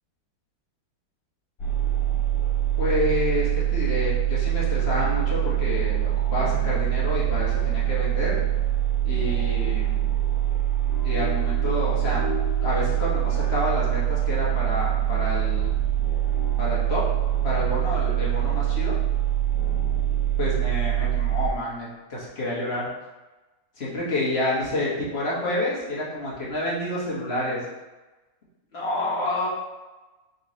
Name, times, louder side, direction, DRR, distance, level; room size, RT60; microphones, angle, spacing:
sound 1, 1.6-21.5, right 11 dB, 60° left, 1.7 m, -24 dB
voice 1, 2.8-8.3 9.0-10.0 11.0-12.3 12.6-15.7 16.6-17.0 17.4-19.0 20.4-22.9 23.8-27.6 28.7-29.5, left 1 dB, 40° left, -6 dB, 1.2 m, -28 dB
3.8 x 3.0 x 4.0 m, 1.1 s
omnidirectional pair, 2.1 m